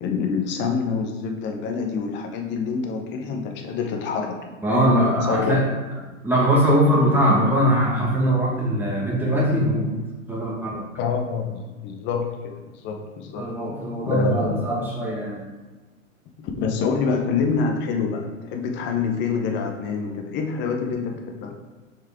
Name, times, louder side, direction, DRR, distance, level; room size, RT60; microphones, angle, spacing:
voice 1, 0.0-5.6 11.0-13.5 14.1-14.6 16.4-21.5, left 5 dB, 25° left, 3 dB, 0.8 m, -26 dB
voice 2, 4.6-5.7 6.2-10.0 10.3-10.8 13.4-15.4, equal, 5° right, -5 dB, 1.5 m, -21 dB
6.1 x 4.7 x 3.5 m, 1.2 s
hypercardioid pair, 120°, 41 cm